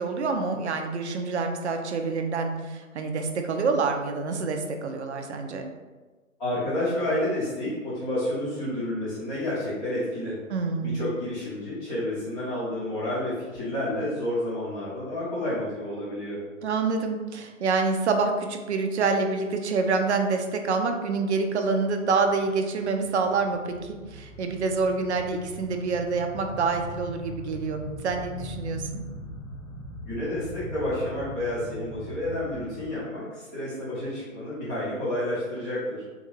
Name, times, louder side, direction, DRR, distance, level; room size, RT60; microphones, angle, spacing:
voice 1, 0.0-5.7 10.5-11.0 16.6-29.0, right 4 dB, 55° right, 5 dB, 0.5 m, -27 dB
voice 2, 6.4-10.4 10.8-16.4 30.1-36.1, left 1 dB, 10° left, -10 dB, 0.6 m, -30 dB
sound 1, 22.1-32.9, equal, 75° left, 1.2 m, -40 dB
3.7 x 2.4 x 3.1 m, 1.3 s
figure-of-eight pair, 140°, 41 cm